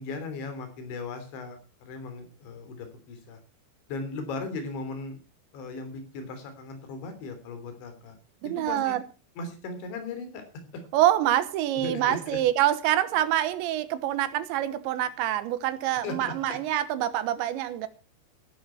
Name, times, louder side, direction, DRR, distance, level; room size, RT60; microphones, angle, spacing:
voice 1, 0.0-3.4 3.9-5.2 5.5-8.2 8.4-9.0 9.4-10.4 11.8-12.4 16.0-16.6, left 3 dB, 75° left, 5.6 m, -37 dB
voice 2, 8.4-9.0 10.9-17.9, right 12 dB, 80° right, 3.4 m, -26 dB
17.0 x 12.0 x 4.5 m
omnidirectional pair, 5.3 m